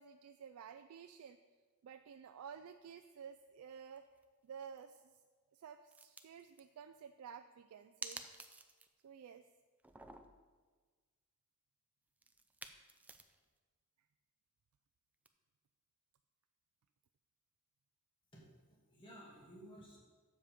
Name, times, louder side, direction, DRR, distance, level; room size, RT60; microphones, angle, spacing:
voice 1, 0.0-1.4 1.8-4.1 4.4-5.2 5.5-8.2 9.0-9.5, right 7 dB, 80° right, 9 dB, 0.3 m, -53 dB
sound 1, 4.0-4.2 4.6-4.8 5.9-6.6 8.0-9.0 9.3-9.4 9.8-10.5 12.2-13.5 15.3-15.4, right 2 dB, 5° right, 0.4 m, -51 dB
voice 2, 18.3-20.0, equal, 25° left, -4 dB, 2.1 m, -56 dB
7.5 x 7.2 x 5.0 m, 1.4 s
head